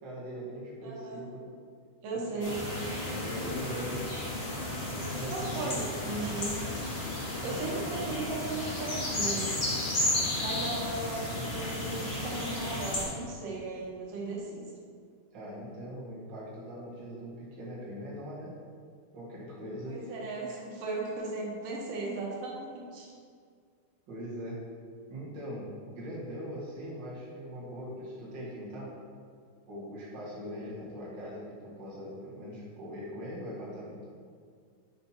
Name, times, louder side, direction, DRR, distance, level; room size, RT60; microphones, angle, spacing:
voice 1, 0.0-1.5 2.3-2.4 3.1-4.1 5.0-5.9 15.3-18.6 19.1-20.1 24.1-24.6 25.1-29.0 29.7-34.0, equal, 40° right, -7 dB, 2.0 m, -41 dB
voice 2, 0.8-1.2 2.0-2.6 5.3-6.4 7.4-9.6 10.4-14.7 19.9-23.1, right 3 dB, 85° right, -3 dB, 2.7 m, -36 dB
sound 1, 2.4-13.0, left 1 dB, 40° left, 0.9 m, -33 dB
8.7 x 5.9 x 2.9 m, 2.1 s
omnidirectional pair, 3.7 m